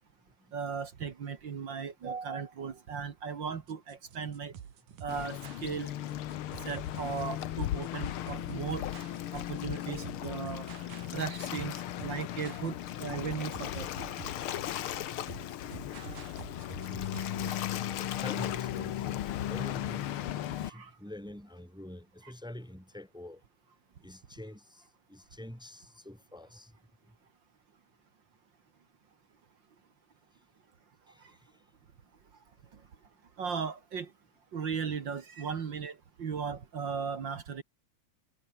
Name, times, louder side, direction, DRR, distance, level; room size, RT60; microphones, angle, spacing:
voice 1, 0.5-4.5 5.0-5.9 6.6-8.8 9.3-10.7 11.1-13.9 20.7-20.9 22.2-22.3 33.4-34.1 34.5-37.6, right 6 dB, 45° right, 1.8 m, -37 dB
sound 1, 3.7-17.7, right 8 dB, 85° right, 4.3 m, -48 dB
Waves surf, 5.1-20.7, left 12 dB, 85° left, 1.2 m, -36 dB
voice 2, 18.2-20.1 20.5-23.4 24.0-24.8 25.1-26.7 31.1-31.4, left 1 dB, ahead, 2.0 m, -46 dB
omnidirectional pair, 3.8 m